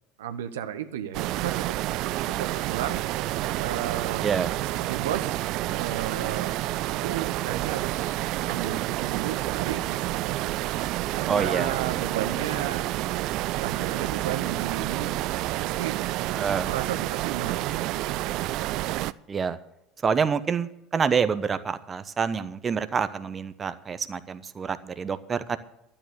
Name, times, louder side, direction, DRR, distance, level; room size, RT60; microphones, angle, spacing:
voice 1, 0.2-1.8 2.2-4.2 4.8-6.5 7.0-10.4 11.1-13.3 13.6-16.0 16.7-18.0, right 10 dB, 75° right, 8 dB, 1.0 m, -34 dB
sound 1, 1.1-19.1, right 16 dB, 55° right, 0.4 m, -29 dB
voice 2, 11.3-11.8 16.3-16.7 19.3-19.6 20.0-25.6, right 6 dB, 30° right, 13 dB, 1.0 m, -27 dB
12.5 x 8.9 x 8.0 m, 0.83 s
figure-of-eight pair, 75°, 0 cm